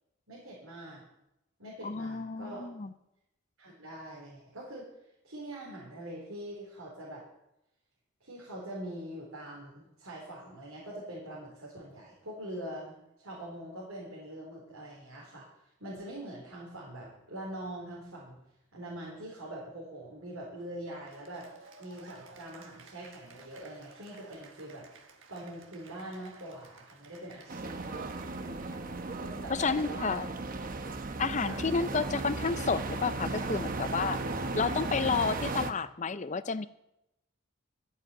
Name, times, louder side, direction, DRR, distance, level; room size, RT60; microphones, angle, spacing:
voice 1, 0.3-1.0 1.6-2.7 3.6-4.9 5.2-7.2 8.2-15.5 15.8-18.4 18.7-21.5 21.8-24.9 25.3-28.9 29.2-30.4 31.4-31.6, right 1 dB, 80° right, -5 dB, 4.3 m, -43 dB
voice 2, 1.8-2.9 29.5-30.3 31.2-34.2 34.5-36.7, left 4 dB, 35° left, 14 dB, 0.5 m, -31 dB
Cheering / Applause, 21.0-30.6, right 4 dB, 65° right, 1.5 m, -56 dB
sound 1, 27.5-35.7, right 3 dB, 40° right, 0.9 m, -36 dB
12.5 x 8.1 x 8.5 m, 0.87 s
head